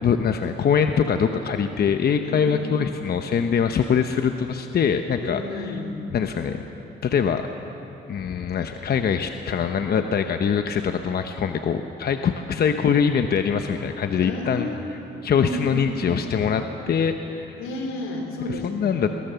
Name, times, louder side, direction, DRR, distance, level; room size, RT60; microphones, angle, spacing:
voice 1, 0.0-5.7 6.1-6.6 7.0-7.4 8.1-17.6 18.6-19.1, left 7 dB, 50° left, 6 dB, 1.0 m, -23 dB
voice 2, 2.2-2.7 5.2-6.0 14.2-14.8 15.3-16.2 17.6-19.1, left 2 dB, 90° left, 3 dB, 3.4 m, -32 dB
23.0 x 18.0 x 7.0 m, 3.0 s
cardioid pair, 90°, 20 cm